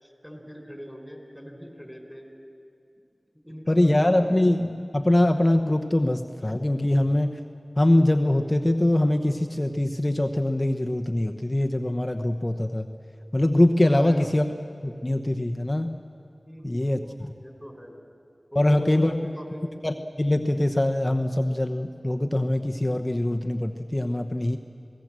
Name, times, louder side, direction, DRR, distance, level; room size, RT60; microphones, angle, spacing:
voice 1, 0.0-2.3 3.4-4.4 13.8-14.5 16.5-17.1 17.4-18.0 18.5-19.7, equal, 5° left, 3 dB, 4.5 m, -41 dB
voice 2, 3.7-7.4 7.8-12.9 13.3-14.5 14.8-15.9 16.6-17.3 18.6-19.1 19.8-24.6, left 1 dB, 30° left, 5 dB, 0.9 m, -23 dB
27.0 x 18.0 x 7.6 m, 2.4 s
wide cardioid pair, 45°, 0 cm